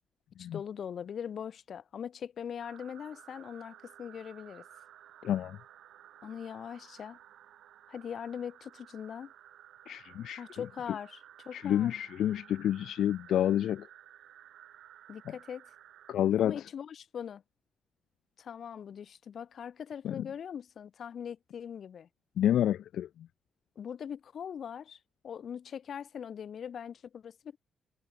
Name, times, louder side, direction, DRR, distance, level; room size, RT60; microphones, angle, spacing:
voice 1, 0.4-4.7 6.2-7.2 7.9-9.3 10.4-11.9 15.1-15.7 16.4-17.4 18.4-22.1 23.8-25.0 25.2-27.6, left 8 dB, 50° left, 2.4 m, -41 dB
sound 1, 2.6-16.2, right 11 dB, 80° right, 1.3 m, -55 dB
voice 2, 5.2-5.6 9.9-10.4 11.5-13.8 16.1-16.6 20.0-20.3 22.4-23.1, left 11 dB, 75° left, 0.3 m, -29 dB
cardioid pair, 145°, 0 cm